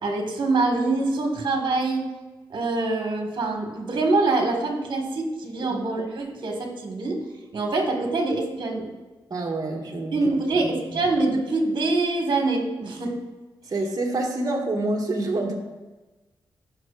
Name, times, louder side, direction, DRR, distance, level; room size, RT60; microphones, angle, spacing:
voice 1, 0.0-2.0 2.5-7.2 7.5-8.9 10.1-13.2, right 3 dB, 60° right, 2 dB, 1.7 m, -24 dB
voice 2, 9.3-10.2 10.6-11.0 13.7-15.5, right 2 dB, 45° right, 1 dB, 1.8 m, -27 dB
13.0 x 5.8 x 2.5 m, 1.2 s
supercardioid pair, 50°, 9 cm